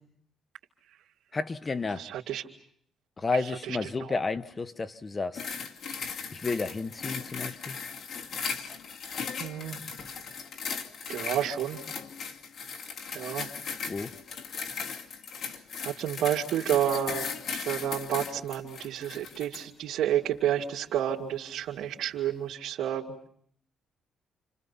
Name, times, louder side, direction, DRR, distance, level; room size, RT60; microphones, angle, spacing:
voice 1, 1.3-2.0 3.2-5.4 6.3-7.8 13.9-14.1, left 4 dB, 25° left, 1.1 m, -31 dB
voice 2, 2.0-2.4 3.7-3.8 9.4-9.8 11.1-11.8 13.1-13.5 15.8-23.1, right 10 dB, 80° right, 2.5 m, -30 dB
sound 1, 5.3-19.7 20.3-20.5, left 6 dB, 55° left, 2.4 m, -38 dB
30.0 x 27.5 x 5.8 m
cardioid pair, 115°, 0 cm